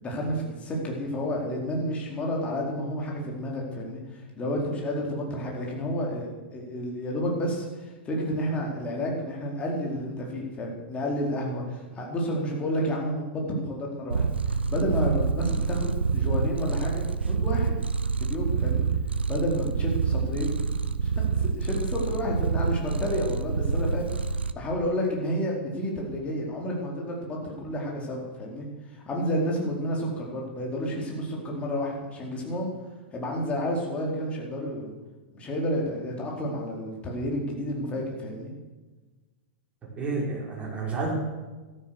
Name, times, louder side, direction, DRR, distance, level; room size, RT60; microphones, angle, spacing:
voice 1, 0.0-14.2 14.7-17.7 18.2-18.8 19.3-20.6 21.0-21.1 21.4-24.1 24.5-28.7 28.9-32.7 33.1-34.9 35.3-38.5, equal, 20° left, -1 dB, 4.4 m, -30 dB
Purr, 14.1-24.5, right 5 dB, 75° right, 0.8 m, -27 dB
voice 2, 40.0-41.1, right 3 dB, 20° right, -3 dB, 5.6 m, -30 dB
14.0 x 13.0 x 6.7 m, 1.2 s
figure-of-eight pair, 100°, 6 cm